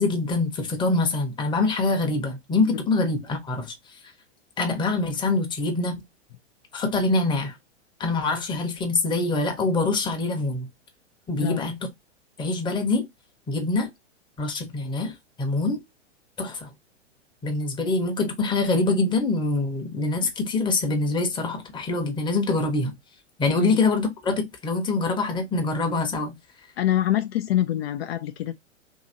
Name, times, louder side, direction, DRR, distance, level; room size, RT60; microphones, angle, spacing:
voice 1, 0.0-3.7 4.6-6.0 6.7-7.5 8.0-10.7 11.3-11.7 12.4-13.1 13.5-13.9 14.4-15.8 16.4-16.7 17.4-22.9 23.4-26.3, left 3 dB, 15° left, 0.8 m, -24 dB
voice 2, 26.8-28.6, left 12 dB, 55° left, 0.5 m, -25 dB
2.8 x 2.7 x 2.6 m
hypercardioid pair, 110°, 36 cm